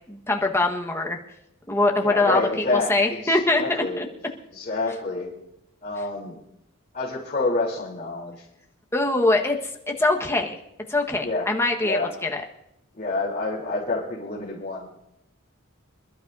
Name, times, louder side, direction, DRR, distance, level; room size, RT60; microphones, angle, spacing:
voice 1, 0.1-1.2 1.7-2.4 2.9-3.6 4.0-4.1 8.9-9.6 10.0-10.6 10.9-12.0 12.3-12.4, left 2 dB, 10° left, 1 dB, 1.4 m, -22 dB
voice 2, 2.0-4.1 4.5-5.3 5.8-6.4 6.9-8.5 11.2-11.5 11.8-12.1 12.9-14.9, left 2 dB, 35° left, -6 dB, 3.6 m, -28 dB
27.0 x 12.5 x 2.7 m, 0.83 s
head